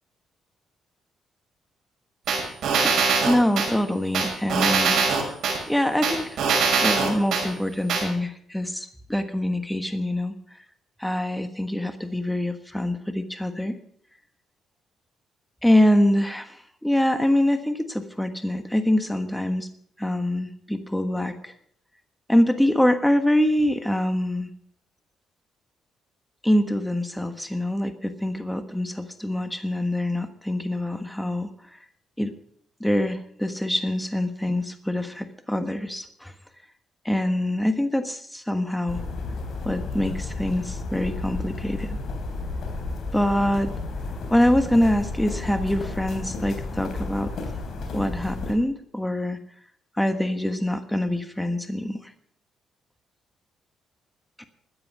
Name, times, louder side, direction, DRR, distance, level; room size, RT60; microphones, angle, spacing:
sound 1, 2.3-3.7 4.1-5.6 6.0-7.4 7.9-8.0, right 5 dB, 70° right, 6.0 m, -22 dB
voice 1, 3.2-5.0 5.7-6.4 6.8-10.3 11.0-13.8 15.6-19.7 20.0-21.5 22.3-24.5 26.4-31.5 32.2-32.3 32.8-36.3 37.0-39.0 39.6-42.0 43.1-43.7 44.3-47.3 47.9-49.4 50.0-52.1, left 1 dB, 5° left, 8 dB, 1.3 m, -24 dB
sound 2, 38.9-48.5, left 3 dB, 60° left, 3.5 m, -32 dB
14.0 x 9.8 x 6.2 m, 0.65 s
cardioid pair, 90°, 0 cm